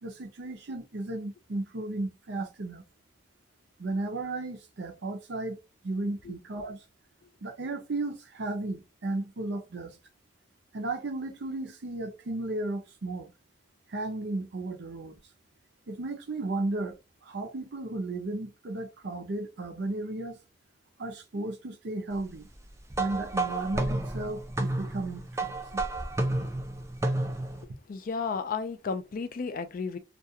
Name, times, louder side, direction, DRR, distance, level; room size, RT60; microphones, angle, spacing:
voice 1, 0.0-2.8 3.8-5.6 5.8-6.8 7.4-10.0 10.7-13.3 13.9-15.2 15.9-20.4 21.0-22.5 23.0-25.5, right 2 dB, 65° right, 0.6 m, -34 dB
sound 1, 22.9-27.6, right 2 dB, 15° right, 0.4 m, -31 dB
voice 2, 27.9-30.0, left 5 dB, 50° left, 0.4 m, -33 dB
2.4 x 2.3 x 2.7 m
head